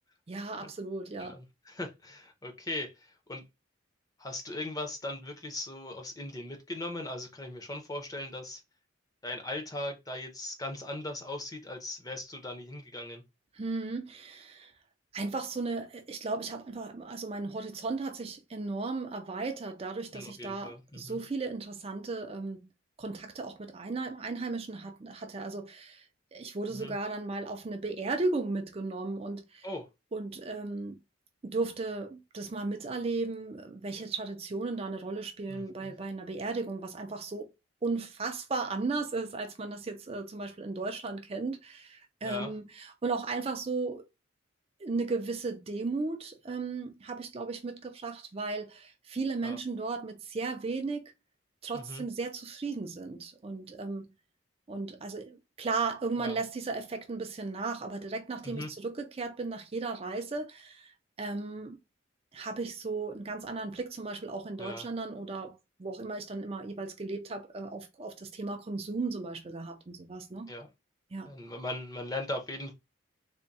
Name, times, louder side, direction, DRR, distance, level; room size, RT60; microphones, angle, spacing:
voice 1, 0.3-1.4 13.5-14.7 15.1-22.7 23.0-26.1 26.3-29.7 30.1-31.0 31.4-37.5 37.8-44.1 44.8-51.1 51.6-54.1 54.7-60.9 61.2-61.8 62.3-70.5 71.1-71.3, right 3 dB, 30° right, 0.4 m, -35 dB
voice 2, 1.3-3.4 4.2-8.6 9.2-13.2 20.1-21.2 26.7-27.0 29.6-29.9 35.5-36.0 42.2-42.5 49.4-49.6 51.7-52.0 56.2-56.4 58.4-58.7 64.6-64.8 70.5-70.7 71.2-72.7, left 1 dB, 20° left, 0.7 m, -39 dB
3.5 x 2.2 x 4.0 m
head